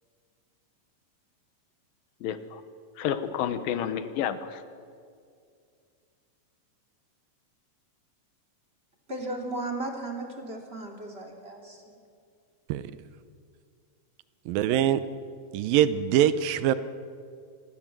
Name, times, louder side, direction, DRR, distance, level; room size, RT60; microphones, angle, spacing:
voice 1, 2.2-2.6 3.0-4.6, left 9 dB, 90° left, 12 dB, 2.9 m, -30 dB
voice 2, 9.1-11.9, right 2 dB, 20° right, 2 dB, 2.6 m, -35 dB
voice 3, 14.5-15.0 15.5-16.7, right 11 dB, 85° right, 13 dB, 2.6 m, -23 dB
25.5 x 20.5 x 7.6 m, 2.3 s
omnidirectional pair, 3.9 m